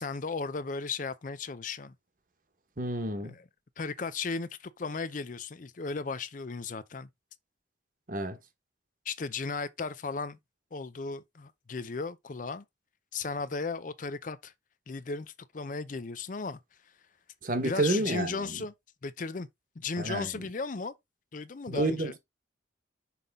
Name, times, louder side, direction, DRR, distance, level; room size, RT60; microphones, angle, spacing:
voice 1, 0.0-1.9 3.2-3.4 3.8-7.1 9.1-10.4 10.7-12.6 13.1-14.5 14.9-16.6 17.6-18.7 19.0-19.5 19.8-20.9 21.3-22.1, left 4 dB, 45° left, 0.5 m, -35 dB
voice 2, 2.8-3.3 8.1-8.4 17.4-18.6 20.0-20.3 21.7-22.2, right 2 dB, 45° right, 1.3 m, -30 dB
5.8 x 5.4 x 3.6 m
head